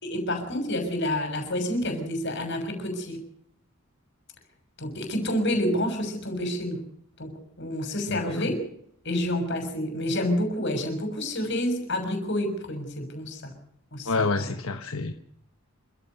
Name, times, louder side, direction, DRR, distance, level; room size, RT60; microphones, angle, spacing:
voice 1, 0.0-3.2 4.8-6.8 7.2-7.3 7.6-8.5 9.0-13.6 13.9-14.5, left 1 dB, 55° left, 5 dB, 6.5 m, -28 dB
voice 2, 8.1-8.5 14.0-15.1, left 3 dB, 75° left, 7 dB, 1.3 m, -28 dB
27.5 x 14.5 x 6.7 m, 0.71 s
head